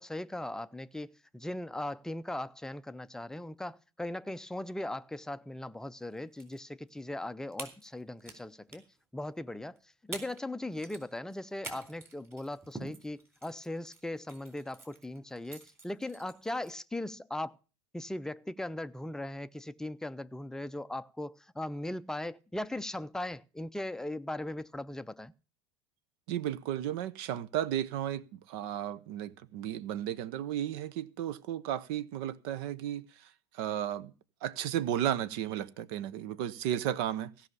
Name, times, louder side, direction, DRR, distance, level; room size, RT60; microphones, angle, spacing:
voice 1, 0.0-8.8 9.1-9.8 10.0-17.5 17.9-25.3, left 1 dB, 5° left, 0.5 m, -39 dB
sound 1, 6.1-6.6 6.9-7.0 7.5-8.4 8.7-9.0 9.8-9.9 10.1-10.5 10.7-16.8, right 3 dB, 15° right, 3.8 m, -47 dB
voice 2, 26.3-33.0 33.6-34.1 34.4-37.3, right 11 dB, 55° right, 0.8 m, -34 dB
16.0 x 5.7 x 8.5 m
figure-of-eight pair, 80°, 15 cm